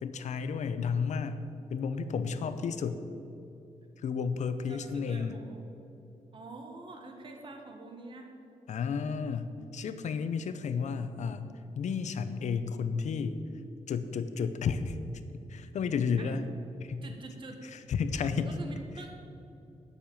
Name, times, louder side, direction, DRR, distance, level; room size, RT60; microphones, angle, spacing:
voice 1, 0.0-3.0 4.0-5.4 8.7-13.4 13.9-15.0 15.5-16.4 16.8-17.0 17.7-18.5, left 6 dB, 70° left, 10 dB, 0.7 m, -32 dB
voice 2, 4.7-5.7 6.3-8.3 16.2-16.3 17.0-17.6 18.4-19.2, right 2 dB, 40° right, 3 dB, 1.4 m, -46 dB
10.0 x 6.7 x 9.2 m, 2.7 s
wide cardioid pair, 170°, 12 cm